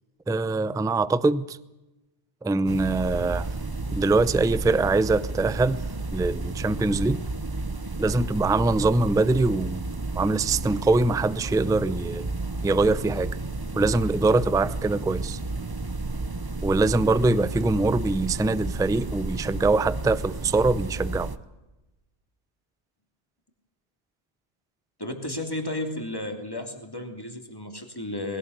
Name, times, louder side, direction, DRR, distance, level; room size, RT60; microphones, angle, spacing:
voice 1, 0.3-1.6 2.4-3.5 3.9-5.8 6.1-7.2 8.0-9.8 10.2-12.3 12.6-13.4 13.7-15.4 16.6-21.3, right 3 dB, 5° right, 0.5 m, -23 dB
sound 1, 2.7-21.4, right 2 dB, 20° right, 0.8 m, -32 dB
voice 2, 25.0-28.4, left 1 dB, 20° left, 3.1 m, -33 dB
20.5 x 18.0 x 8.1 m
omnidirectional pair, 1.1 m